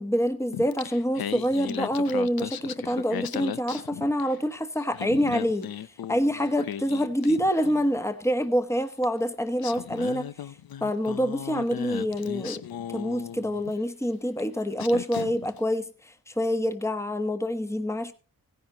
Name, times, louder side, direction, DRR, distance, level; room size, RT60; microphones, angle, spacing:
voice 1, 0.0-5.7 6.1-10.3 10.8-12.6 12.9-18.1, equal, 5° left, 1.2 m, -26 dB
Singing, 0.5-4.5 4.8-8.0 9.0-9.1 9.6-13.8 14.4-14.5 14.8-15.6, left 9 dB, 65° left, 0.6 m, -37 dB
16.5 x 10.5 x 2.9 m
cardioid pair, 70°, 39 cm